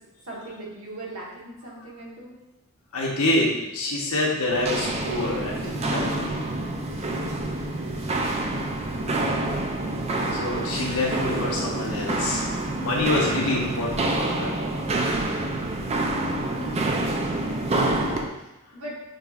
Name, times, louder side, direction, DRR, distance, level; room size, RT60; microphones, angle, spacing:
voice 1, 0.2-2.4 10.5-11.0 16.0-19.0, right 1 dB, 75° right, -5 dB, 1.4 m, -41 dB
voice 2, 2.9-6.4 10.3-12.4 12.8-14.6, left 2 dB, 85° left, -3 dB, 1.0 m, -26 dB
Walk footsteps, 4.5-18.3, right 2 dB, 30° right, 0.4 m, -27 dB
6.3 x 2.9 x 2.4 m, 0.98 s
head